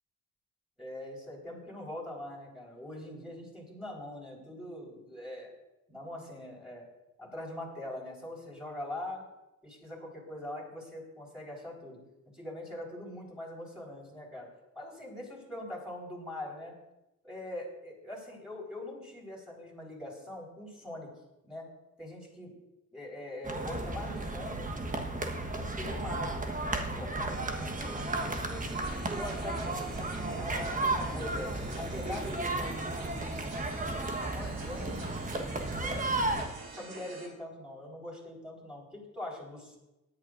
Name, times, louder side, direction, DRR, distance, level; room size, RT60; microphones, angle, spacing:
voice 1, 0.8-5.5 5.9-6.8 7.2-9.2 9.6-12.0 12.3-14.5 14.7-16.7 17.2-21.1 21.4-21.6 22.0-22.5 22.9-24.8 25.5-26.4 26.9-28.7 29.1-33.7 34.0-35.3 35.8-39.8, left 1 dB, ahead, -3 dB, 5.0 m, -43 dB
sound 1, 23.4-36.5, right 2 dB, 25° right, 1.4 m, -34 dB
sound 2, 27.3-37.3, right 2 dB, 60° right, 4.2 m, -46 dB
18.0 x 10.5 x 2.6 m, 0.97 s
cardioid pair, 90°, 30 cm